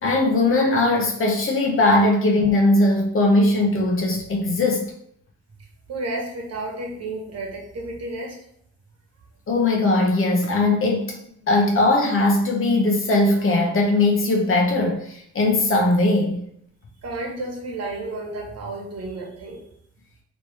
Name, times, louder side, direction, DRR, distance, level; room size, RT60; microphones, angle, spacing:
voice 1, 0.0-4.9 9.5-11.2 11.5-16.5, left 2 dB, 45° left, 0 dB, 0.9 m, -19 dB
voice 2, 5.9-8.4 17.0-19.6, right 2 dB, 55° right, -1 dB, 1.2 m, -31 dB
3.1 x 3.0 x 3.3 m, 0.68 s
cardioid pair, 90°, 30 cm